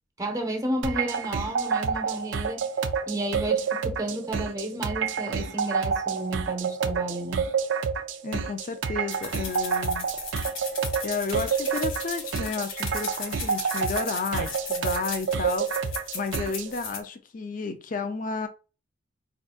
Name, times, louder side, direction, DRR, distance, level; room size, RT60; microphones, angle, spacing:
voice 1, 0.2-2.7 3.1-7.5, right 1 dB, 20° right, 0.7 m, -32 dB
sound 1, 0.8-16.7, right 6 dB, 65° right, 0.4 m, -29 dB
voice 2, 8.2-10.1 11.0-18.5, left 4 dB, 45° left, 0.4 m, -32 dB
sound 2, 9.1-17.0, left 5 dB, 80° left, 0.8 m, -37 dB
4.5 x 2.8 x 2.4 m
head